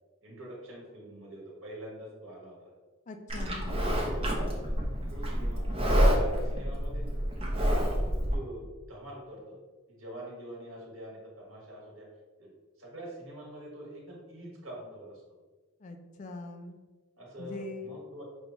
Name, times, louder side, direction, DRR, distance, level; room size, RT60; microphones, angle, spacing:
voice 1, 0.2-2.7 3.3-3.5 4.0-4.8 5.1-7.0 7.3-9.6 9.9-12.1 12.4-12.5 12.8-15.2 17.2-18.2, right 1 dB, 70° right, -3 dB, 1.3 m, -44 dB
voice 2, 3.1-3.9 15.8-16.8 17.4-17.9, left 3 dB, 35° left, 6 dB, 0.3 m, -42 dB
Livestock farm animals working animals, 3.3-8.3, equal, 30° right, 0.6 m, -28 dB
5.3 x 2.2 x 2.9 m, 1.3 s
head